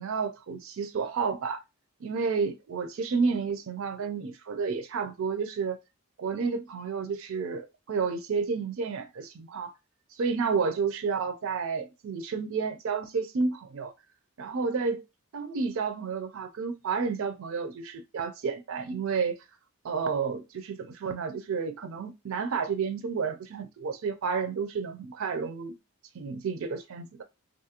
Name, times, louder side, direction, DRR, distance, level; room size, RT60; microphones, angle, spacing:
voice 1, 0.0-1.6 2.0-5.8 6.2-9.7 10.2-13.9 14.4-15.0 15.3-19.4 19.8-25.7 26.1-27.2, right 5 dB, 65° right, 0.4 m, -31 dB
2.6 x 2.3 x 2.8 m
head